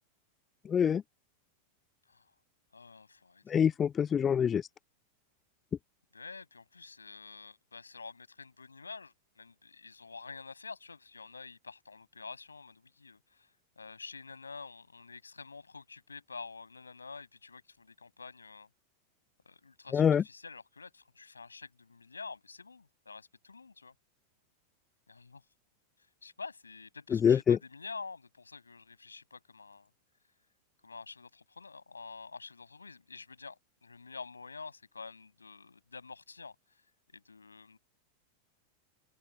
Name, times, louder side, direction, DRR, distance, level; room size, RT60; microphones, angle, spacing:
voice 1, 0.7-1.0 3.5-4.7 19.9-20.2 27.1-27.6, left 8 dB, 20° left, 0.5 m, -25 dB
voice 2, 2.7-3.7 6.1-18.7 19.4-23.9 25.1-25.4 26.2-29.9 30.8-36.8 37.1-37.8, left 4 dB, 75° left, 6.6 m, -48 dB
open air
figure-of-eight pair, 90°, 0 cm